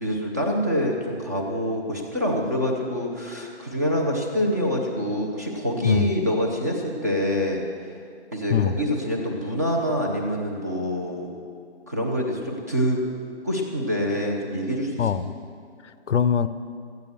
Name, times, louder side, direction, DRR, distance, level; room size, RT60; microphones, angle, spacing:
voice 1, 0.0-7.6 8.3-11.3 11.9-13.0 13.4-15.0, equal, 15° right, -1 dB, 0.6 m, -26 dB
voice 2, 15.0-15.3 15.8-16.5, left 8 dB, 85° left, 13 dB, 0.8 m, -22 dB
13.5 x 9.2 x 6.9 m, 2.3 s
hypercardioid pair, 170°, 35 cm